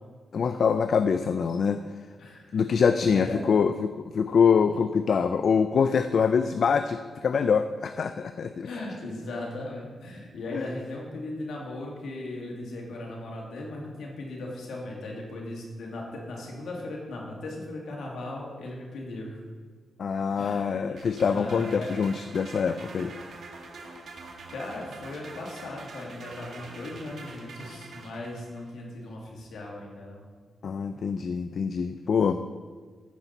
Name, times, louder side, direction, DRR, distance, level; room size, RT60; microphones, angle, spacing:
voice 1, 0.3-1.8 2.5-8.7 10.5-10.6 20.0-23.1 30.6-32.5, left 6 dB, 65° left, 10 dB, 0.3 m, -24 dB
voice 2, 2.2-2.7 3.1-3.6 8.6-19.4 20.4-21.0 21.3-22.0 24.5-30.3, left 2 dB, 85° left, -1 dB, 2.1 m, -38 dB
sound 1, 21.0-28.7, right 3 dB, 65° right, 1.4 m, -45 dB
14.5 x 5.6 x 4.0 m, 1.5 s
cardioid pair, 75°, 0 cm